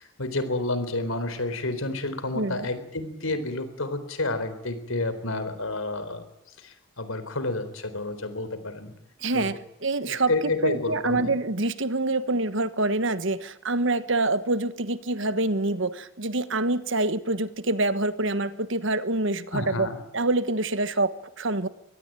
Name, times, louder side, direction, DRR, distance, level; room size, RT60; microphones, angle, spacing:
voice 1, 0.0-6.2 6.6-8.9 9.3-9.6 10.1-11.3 19.5-20.0, left 2 dB, 75° left, 11 dB, 4.0 m, -30 dB
voice 2, 2.3-2.7 9.2-10.3 10.6-19.9 20.1-21.7, right 2 dB, 60° right, 13 dB, 1.4 m, -26 dB
24.5 x 19.0 x 9.2 m, 0.84 s
head